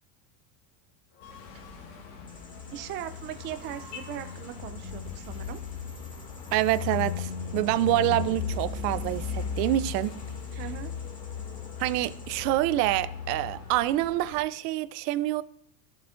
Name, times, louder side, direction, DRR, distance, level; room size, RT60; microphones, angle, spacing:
sound 1, 1.1-4.1, left 6 dB, 65° left, 1.8 m, -53 dB
sound 2, 1.2-14.4, left 6 dB, 85° left, 2.3 m, -37 dB
sound 3, 2.3-12.4, left 2 dB, 15° left, 1.4 m, -55 dB
voice 1, 2.7-5.6 10.6-11.2, right 11 dB, 25° right, 0.4 m, -39 dB
voice 2, 6.5-10.2 11.8-15.4, right 15 dB, 75° right, 0.6 m, -26 dB
14.0 x 7.1 x 2.5 m
supercardioid pair, 130°, 49 cm